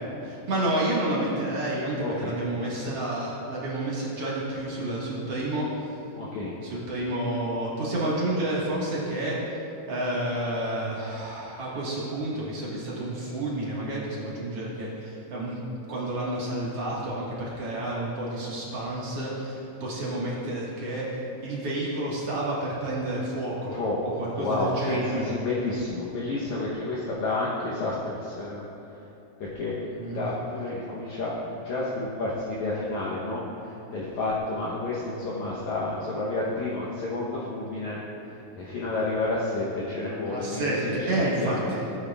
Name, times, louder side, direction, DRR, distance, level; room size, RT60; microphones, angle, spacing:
voice 1, 0.2-5.7 6.7-9.4 9.9-15.6 15.9-21.1 21.4-23.8 24.0-25.3 30.0-30.2 40.3-41.8, right 1 dB, 50° right, -7 dB, 2.0 m, -30 dB
voice 2, 2.0-2.3 6.2-6.5 23.7-28.6 29.4-38.0 38.3-41.8, left 2 dB, 75° left, -5 dB, 1.7 m, -30 dB
16.5 x 8.8 x 2.4 m, 2.9 s
omnidirectional pair, 4.5 m